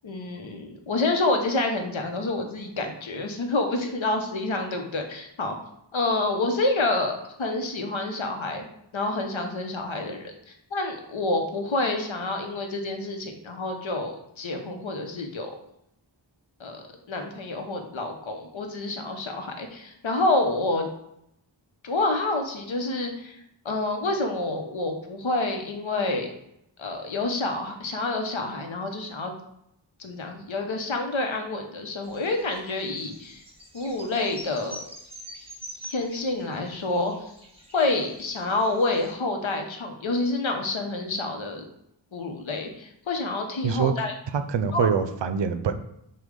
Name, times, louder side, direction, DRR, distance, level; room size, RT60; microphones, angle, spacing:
voice 1, 0.0-5.6 5.9-8.6 8.9-10.3 10.7-15.6 16.6-20.8 21.8-23.4 23.6-26.3 26.8-29.3 30.0-33.4 33.7-34.8 35.9-37.1 37.7-41.7 42.1-44.1 44.7-44.9, left 2 dB, 80° left, 4 dB, 0.8 m, -28 dB
sound 1, 32.0-39.1, equal, 10° right, 1.2 m, -45 dB
voice 2, 43.6-43.9 44.3-45.8, right 6 dB, 70° right, 10 dB, 0.5 m, -24 dB
6.1 x 2.3 x 3.7 m, 0.77 s
wide cardioid pair, 50°, 46 cm